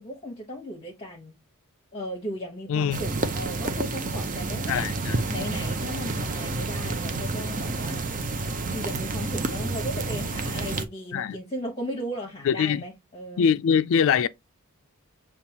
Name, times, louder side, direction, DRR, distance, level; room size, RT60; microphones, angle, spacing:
voice 1, 0.0-1.4 1.9-4.9 5.3-8.0 8.7-13.5, equal, 25° left, 1.1 m, -36 dB
voice 2, 2.7-3.0 4.7-5.2 11.1-11.4 12.4-12.8 13.4-14.3, left 7 dB, 60° left, 0.3 m, -23 dB
sound 1, 2.9-10.9, right 3 dB, 35° right, 0.6 m, -29 dB
7.1 x 2.4 x 2.8 m
head